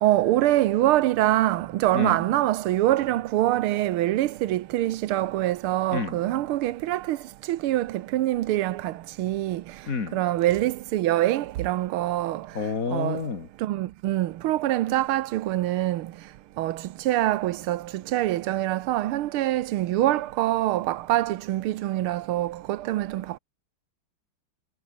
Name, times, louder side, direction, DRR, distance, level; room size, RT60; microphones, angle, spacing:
voice 1, 0.0-9.8 10.1-12.5 12.9-13.3 13.6-16.1 16.6-23.4, right 14 dB, 90° right, 1.7 m, -25 dB
voice 2, 1.9-2.2 5.9-6.2 9.9-10.2 12.5-13.5, left 5 dB, 40° left, 2.7 m, -29 dB
omnidirectional pair, 2.3 m